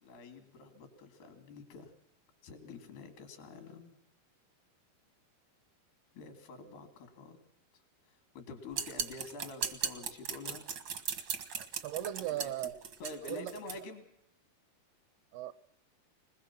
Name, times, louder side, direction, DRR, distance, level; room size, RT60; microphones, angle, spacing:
voice 1, 0.0-1.9 2.4-4.0 6.1-7.4 7.7-7.8 8.1-10.7 12.3-12.5 13.0-14.1, left 3 dB, 80° left, 6 dB, 4.8 m, -47 dB
sound 1, 8.7-13.8, right 6 dB, 60° right, 1.2 m, -38 dB
voice 2, 11.6-12.8 13.3-13.5 15.3-15.5, right 12 dB, 80° right, 15 dB, 2.8 m, -38 dB
22.0 x 21.0 x 6.1 m, 0.81 s
omnidirectional pair, 4.5 m